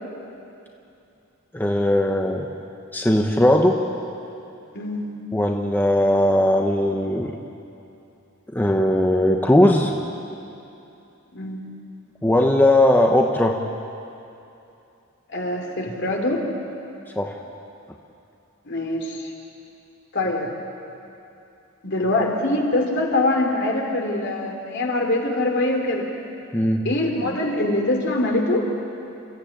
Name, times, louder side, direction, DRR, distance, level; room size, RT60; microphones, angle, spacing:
voice 1, 1.5-2.5 2.9-3.8 5.3-7.3 8.5-9.9 12.2-13.6 17.1-17.4 26.5-26.9, left 1 dB, 10° left, 2 dB, 1.0 m, -18 dB
voice 2, 4.7-5.1 11.3-11.6 15.3-16.5 18.6-19.3 20.1-20.5 21.8-26.1 26.8-28.6, left 2 dB, 55° left, 1 dB, 3.2 m, -23 dB
28.5 x 14.5 x 8.8 m, 2.7 s
head